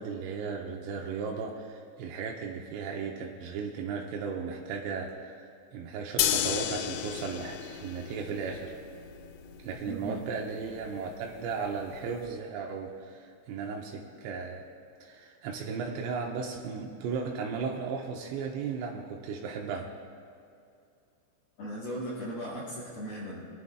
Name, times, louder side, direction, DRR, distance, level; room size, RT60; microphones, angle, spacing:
voice 1, 0.0-8.7 9.6-14.7 15.0-19.9, right 5 dB, 85° right, 0 dB, 2.5 m, -36 dB
sound 1, 6.2-12.2, left 10 dB, 80° left, 2.8 m, -34 dB
voice 2, 9.9-10.2 21.6-23.5, equal, 60° left, -8 dB, 3.2 m, -37 dB
20.5 x 11.0 x 2.3 m, 2.5 s
omnidirectional pair, 6.0 m